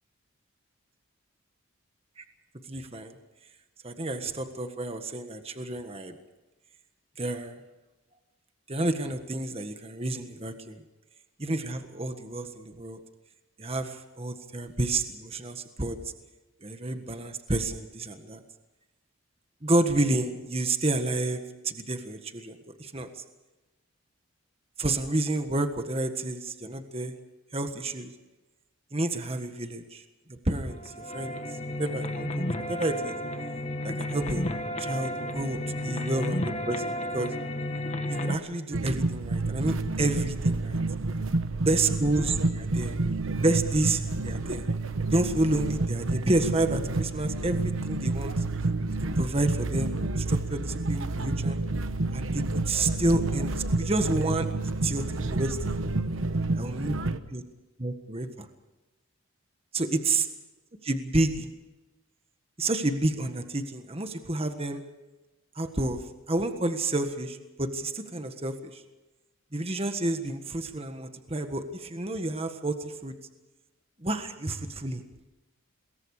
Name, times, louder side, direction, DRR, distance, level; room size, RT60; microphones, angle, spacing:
voice 1, 2.7-3.1 3.8-6.1 7.2-7.6 8.7-10.8 11.4-13.0 13.6-16.0 16.6-18.4 19.6-23.2 24.8-27.1 27.5-28.1 28.9-30.0 30.3-31.4 31.8-33.2 33.8-34.4 34.8-37.3 38.1-40.8 41.6-42.9 43.4-44.7 45.1-48.3 49.2-51.6 52.1-55.8 56.6-57.0 57.3-57.4 57.8-58.5 59.7-60.3 60.8-61.5 62.6-64.8 65.5-68.8 69.5-73.1 74.0-75.0, right 2 dB, 30° right, 7 dB, 1.5 m, -30 dB
sound 1, 30.7-38.4, left 1 dB, 30° left, 1.8 m, -32 dB
sound 2, 38.7-57.2, right 2 dB, 75° right, 1.1 m, -29 dB
26.5 x 22.0 x 4.9 m, 1.1 s
head